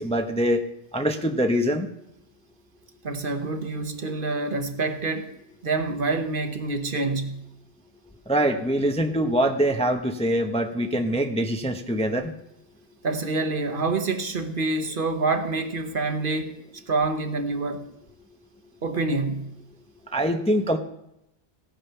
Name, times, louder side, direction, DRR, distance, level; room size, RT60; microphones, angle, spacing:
voice 1, 0.0-1.9 8.3-12.3 20.1-20.8, equal, 5° left, 0.7 m, -24 dB
voice 2, 3.0-5.3 5.6-7.4 13.0-16.5 16.9-17.9 18.8-19.5, right 3 dB, 50° right, 1.2 m, -27 dB
16.0 x 8.8 x 5.6 m
omnidirectional pair, 1.2 m